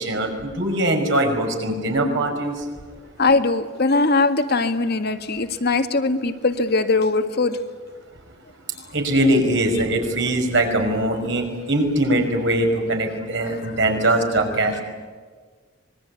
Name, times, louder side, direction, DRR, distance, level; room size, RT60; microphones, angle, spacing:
voice 1, 0.0-2.6 8.9-14.8, right 1 dB, 65° right, 4 dB, 5.7 m, -21 dB
voice 2, 3.2-7.6 13.6-14.0, left 3 dB, 55° left, 8 dB, 1.7 m, -21 dB
25.5 x 21.5 x 9.6 m, 1.5 s
head